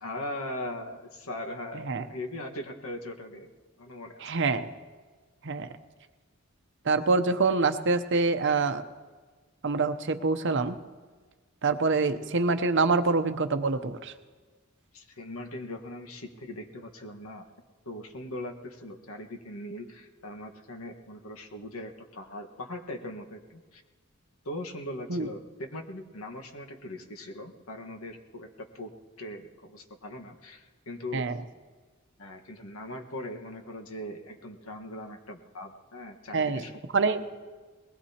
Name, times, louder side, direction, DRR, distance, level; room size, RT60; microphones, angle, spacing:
voice 1, 0.0-3.5 3.8-4.3 14.9-17.5 17.8-23.8 24.4-28.9 29.2-31.2 32.2-36.7 37.0-37.3, left 1 dB, 85° left, 3 dB, 1.5 m, -40 dB
voice 2, 4.2-4.7 5.4-5.7 6.8-8.8 9.6-10.8 11.6-14.1 25.1-25.3 31.1-31.4 36.3-36.6 36.9-37.2, right 3 dB, 60° right, 9 dB, 0.7 m, -25 dB
21.0 x 20.0 x 2.9 m, 1.4 s
head